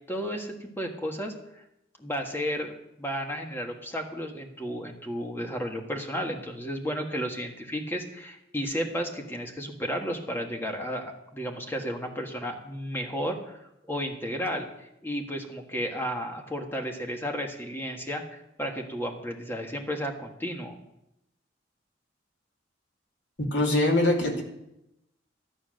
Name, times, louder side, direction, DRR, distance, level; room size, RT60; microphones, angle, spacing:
voice 1, 0.1-1.3 2.0-13.6 13.9-20.8, equal, 10° left, 3 dB, 1.6 m, -33 dB
voice 2, 23.4-24.4, left 1 dB, 65° left, 1 dB, 2.6 m, -23 dB
12.5 x 9.9 x 6.5 m, 0.85 s
head